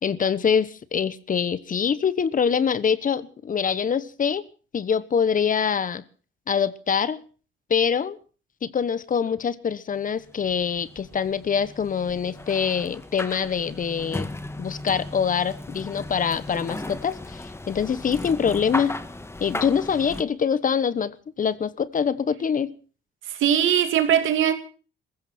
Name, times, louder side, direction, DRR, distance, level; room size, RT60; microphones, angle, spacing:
voice 1, 0.0-4.4 4.7-6.0 6.5-7.2 7.7-8.2 8.6-14.3 14.6-19.0 19.4-22.7, left 7 dB, 45° left, 1.1 m, -24 dB
sound 1, 10.2-20.2, left 2 dB, 15° left, 1.3 m, -36 dB
voice 2, 23.2-24.5, right 9 dB, 80° right, 2.5 m, -20 dB
22.5 x 15.0 x 4.4 m
cardioid pair, 90°, 20 cm